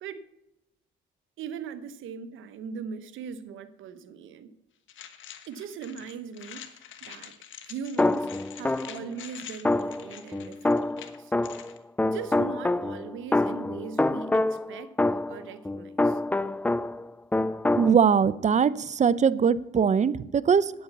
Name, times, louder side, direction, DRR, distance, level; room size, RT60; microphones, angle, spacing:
voice 1, 1.4-4.5 5.5-7.3 7.6-8.3 8.5-11.3 12.1-14.9 15.3-16.2, right 6 dB, 80° right, 12 dB, 1.0 m, -40 dB
sound 1, 4.9-11.8, left 10 dB, 75° left, 1.3 m, -46 dB
sound 2, 8.0-9.1 9.7-17.1 17.3-17.9, left 2 dB, 10° left, 0.3 m, -26 dB
voice 2, 17.8-20.7, right 7 dB, 35° right, 17 dB, 0.6 m, -21 dB
9.1 x 8.7 x 6.7 m, 0.89 s
cardioid pair, 90°, 20 cm